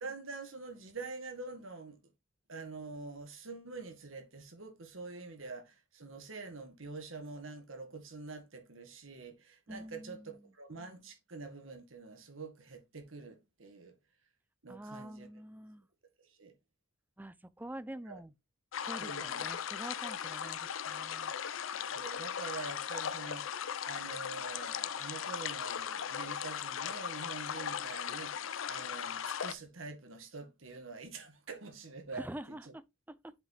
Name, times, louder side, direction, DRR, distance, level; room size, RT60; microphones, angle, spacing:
voice 1, 0.0-2.0 2.5-10.2 10.5-14.0 14.6-15.3 16.3-16.5 18.1-18.2 19.0-19.4 21.8-32.2, right 3 dB, 80° right, 1.9 m, -46 dB
voice 2, 9.7-10.4 14.7-15.9 17.2-18.3 18.8-21.3 32.1-33.3, right 1 dB, 10° right, 0.5 m, -46 dB
sound 1, 18.7-29.5, left 8 dB, 75° left, 0.6 m, -38 dB
7.5 x 5.2 x 3.3 m
head